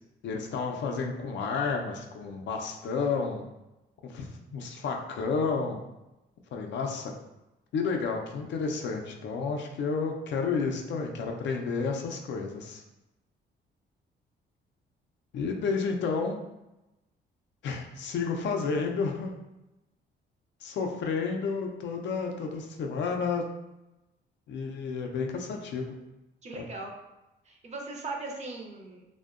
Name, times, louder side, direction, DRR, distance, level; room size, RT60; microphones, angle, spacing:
voice 1, 0.2-3.5 4.1-5.8 6.5-7.1 7.7-12.8 15.3-16.4 17.6-19.3 20.6-23.4 24.5-25.9 26.5-26.6, left 5 dB, 65° left, 2 dB, 0.4 m, -31 dB
voice 2, 26.4-26.9 27.5-29.0, right 3 dB, 35° right, 0 dB, 0.5 m, -38 dB
2.6 x 2.1 x 2.4 m, 0.96 s
cardioid pair, 90°, 20 cm